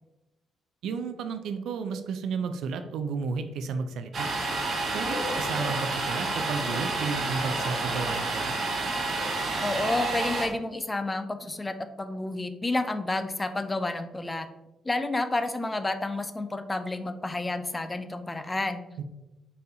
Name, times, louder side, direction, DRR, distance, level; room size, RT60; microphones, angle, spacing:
voice 1, 0.8-4.3 4.9-8.6 19.0-19.1, right 5 dB, 80° right, 8 dB, 0.4 m, -32 dB
Domestic sounds home sounds, 4.1-10.5, right 3 dB, 50° right, 0.9 m, -29 dB
Bark, 5.0-5.9 6.6-6.9 7.4-8.1 9.1-9.4, left 3 dB, 45° left, 0.9 m, -39 dB
voice 2, 9.6-14.5 14.8-18.8, left 2 dB, 20° left, 9 dB, 0.4 m, -30 dB
4.1 x 3.8 x 2.7 m, 1.0 s
cardioid pair, 90°, 0 cm